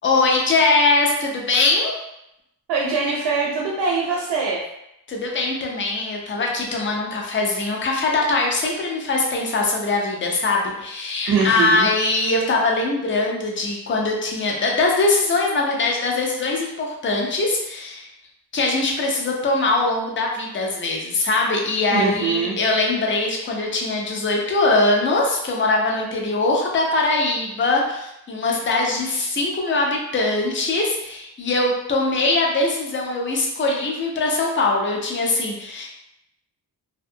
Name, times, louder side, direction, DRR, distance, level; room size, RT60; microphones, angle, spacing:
voice 1, 0.0-1.9 5.1-18.1 18.5-35.9, left 2 dB, 30° left, -1 dB, 0.4 m, -22 dB
voice 2, 2.7-4.6 11.3-11.9 21.9-22.5, right 4 dB, 75° right, -3 dB, 0.6 m, -22 dB
2.5 x 2.2 x 2.6 m, 0.83 s
wide cardioid pair, 165°, 39 cm